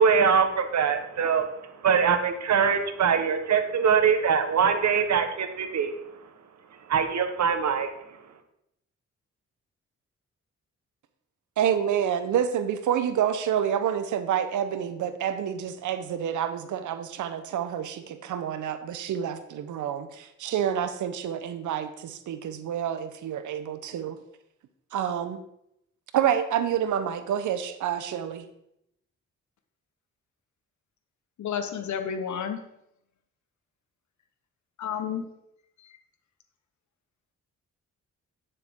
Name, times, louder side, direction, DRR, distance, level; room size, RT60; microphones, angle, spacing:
voice 1, 0.0-6.3 6.9-8.2, right 6 dB, 65° right, 8 dB, 1.2 m, -23 dB
voice 2, 11.6-24.2 24.9-25.4 26.1-28.5, right 9 dB, 85° right, 11 dB, 0.8 m, -28 dB
voice 3, 31.4-32.6 34.8-35.2, left 7 dB, 75° left, 8 dB, 1.2 m, -30 dB
9.8 x 6.7 x 3.7 m, 0.78 s
cardioid pair, 70°, 29 cm